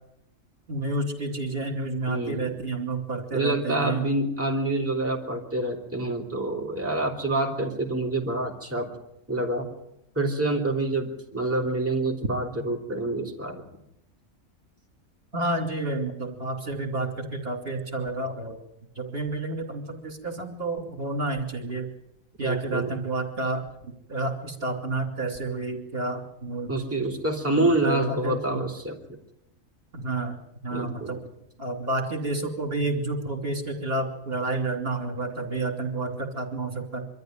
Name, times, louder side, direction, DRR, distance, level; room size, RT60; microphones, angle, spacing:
voice 1, 0.7-4.1 15.3-18.6 19.0-21.9 22.4-26.7 27.5-28.6 29.9-30.4 30.6-31.2 31.6-37.1, right 2 dB, 45° right, 5 dB, 3.2 m, -30 dB
voice 2, 2.1-2.6 3.3-8.9 9.3-9.7 10.2-13.6 22.4-22.9 26.7-29.2 30.7-31.2, right 2 dB, 10° right, 0 dB, 3.5 m, -27 dB
24.5 x 13.5 x 9.4 m, 0.83 s
omnidirectional pair, 1.4 m